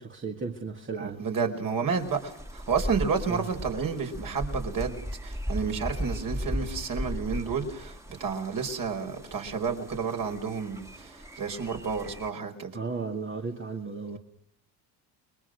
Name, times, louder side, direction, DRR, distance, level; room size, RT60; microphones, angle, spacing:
voice 1, 0.0-1.2 3.3-3.5 12.7-14.2, right 4 dB, 25° right, 2.2 m, -35 dB
voice 2, 1.0-12.7, right 5 dB, 45° right, 5.0 m, -31 dB
sound 1, 2.0-12.3, equal, 5° right, 2.4 m, -37 dB
29.5 x 22.0 x 6.5 m
supercardioid pair, 80°, 46 cm